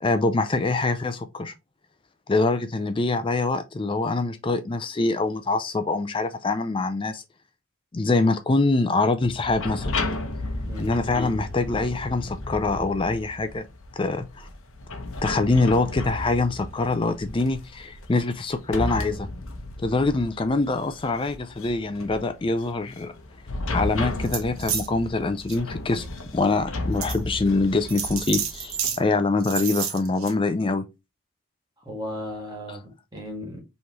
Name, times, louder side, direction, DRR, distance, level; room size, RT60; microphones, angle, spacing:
voice 1, 0.0-1.5 2.3-7.2 7.9-9.9 10.8-13.6 13.9-14.5 15.2-19.3 19.8-23.1 23.7-26.1 26.3-30.8 32.7-32.8, left 3 dB, 25° left, 0.4 m, -24 dB
sound 1, 9.2-29.0, left 2 dB, 65° left, 0.9 m, -34 dB
Fire, 10.1-12.5, left 1 dB, 80° left, 1.6 m, -41 dB
sound 2, 24.2-24.9 25.4-25.6 26.2-26.3 27.0-27.2 27.9-29.0 29.4-30.3, right 8 dB, 70° right, 1.0 m, -29 dB
voice 2, 31.8-33.6, left 1 dB, 20° right, 1.7 m, -35 dB
5.4 x 3.2 x 2.9 m
head